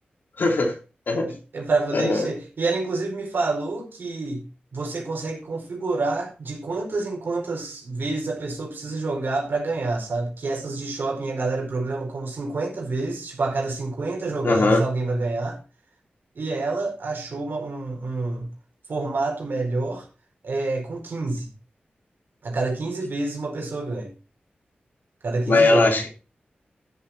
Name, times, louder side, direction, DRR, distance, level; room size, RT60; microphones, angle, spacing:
voice 1, 0.4-0.8 1.1-1.3 1.9-2.3 14.4-14.8 25.5-26.1, left 2 dB, 70° left, 3.3 m, -19 dB
voice 2, 1.3-15.6 16.3-18.5 18.9-20.1 20.4-21.5 22.4-24.1 25.2-25.9, right 3 dB, 70° right, 4.7 m, -28 dB
13.0 x 7.5 x 4.2 m
cardioid pair, 65°, 4 cm